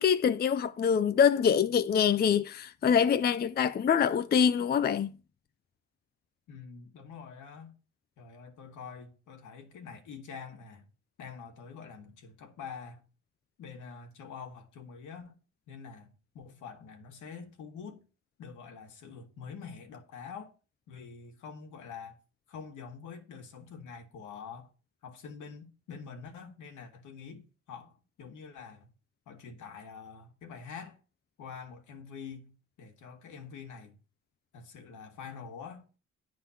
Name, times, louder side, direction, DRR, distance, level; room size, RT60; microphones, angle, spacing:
voice 1, 0.0-5.1, left 7 dB, 35° left, 0.5 m, -25 dB
voice 2, 6.5-7.7 8.2-10.9 11.2-13.0 13.6-15.4 15.7-18.0 18.4-20.5 20.9-22.2 22.5-24.7 25.0-28.9 29.3-31.0 31.4-34.0 34.5-36.0, left 6 dB, 80° left, 1.8 m, -46 dB
9.9 x 3.9 x 6.9 m
cardioid pair, 90°, 30 cm